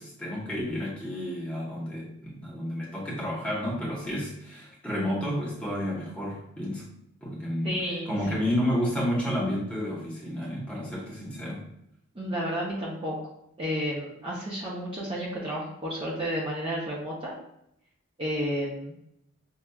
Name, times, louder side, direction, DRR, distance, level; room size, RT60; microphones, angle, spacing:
voice 1, 0.0-6.9 7.2-7.8 8.1-11.6, equal, 5° left, -6 dB, 0.9 m, -31 dB
voice 2, 7.6-8.4 12.1-13.1 13.6-17.3 18.2-18.9, equal, 25° right, -5 dB, 0.6 m, -31 dB
5.5 x 2.3 x 2.3 m, 0.77 s
head